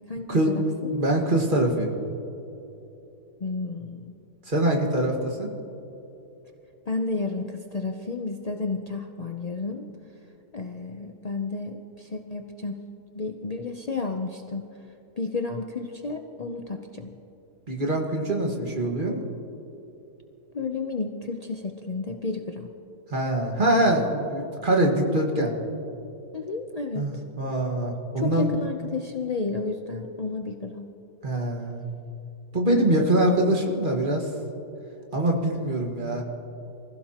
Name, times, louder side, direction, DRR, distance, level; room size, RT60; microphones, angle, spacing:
voice 1, 0.1-0.6 3.4-4.1 6.9-9.9 10.5-12.8 13.1-14.6 15.2-17.2 20.5-22.7 26.3-27.1 28.2-30.9, left 3 dB, 85° left, 4 dB, 0.3 m, -31 dB
voice 2, 0.9-1.9 4.5-5.5 17.7-19.2 23.1-25.5 26.9-28.5 31.2-31.8 32.5-34.3 35.1-36.2, right 1 dB, 30° right, 0 dB, 1.8 m, -24 dB
25.0 x 15.5 x 2.9 m, 2.9 s
omnidirectional pair, 1.7 m